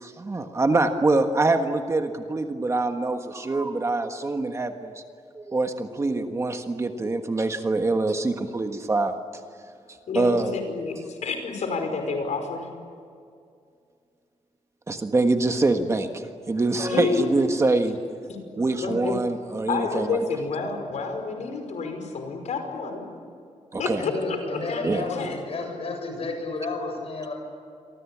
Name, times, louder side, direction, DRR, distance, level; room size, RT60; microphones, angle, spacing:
voice 1, 0.0-4.9 5.3-9.2 10.1-10.5 14.9-18.0 18.5-20.2 23.7-24.0 24.8-25.1, right 2 dB, 25° right, 5 dB, 1.5 m, -24 dB
voice 2, 10.1-12.7 16.9-17.3 18.3-18.5 18.8-19.1 19.7-23.1 23.8-25.4, left 4 dB, 70° left, 5 dB, 5.5 m, -29 dB
voice 3, 24.0-27.3, left 3 dB, 50° left, 3 dB, 7.5 m, -32 dB
28.0 x 24.0 x 8.6 m, 2.3 s
wide cardioid pair, 175°, 12 cm